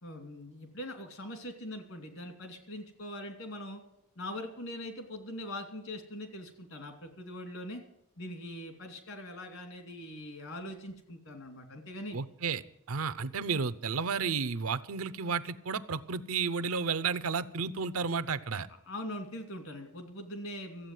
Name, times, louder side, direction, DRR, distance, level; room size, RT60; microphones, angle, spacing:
voice 1, 0.0-3.8 4.2-7.8 8.2-12.2 18.9-20.9, left 1 dB, 70° left, 5 dB, 2.7 m, -42 dB
voice 2, 12.1-12.6 12.9-18.7, right 5 dB, 80° right, 14 dB, 0.7 m, -32 dB
14.5 x 8.2 x 9.1 m, 0.78 s
head